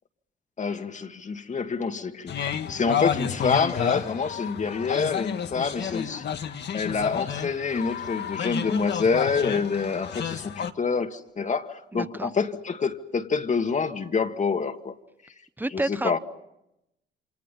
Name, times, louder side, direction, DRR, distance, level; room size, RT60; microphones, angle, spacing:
voice 1, 0.6-6.3 6.7-14.9 15.7-16.2, left 5 dB, 40° left, 2.0 m, -27 dB
sound 1, 2.3-10.7, left 8 dB, 60° left, 1.6 m, -31 dB
voice 2, 11.9-12.3 15.6-16.2, right 2 dB, 10° right, 1.0 m, -30 dB
28.5 x 26.5 x 5.5 m
cardioid pair, 90°, 20 cm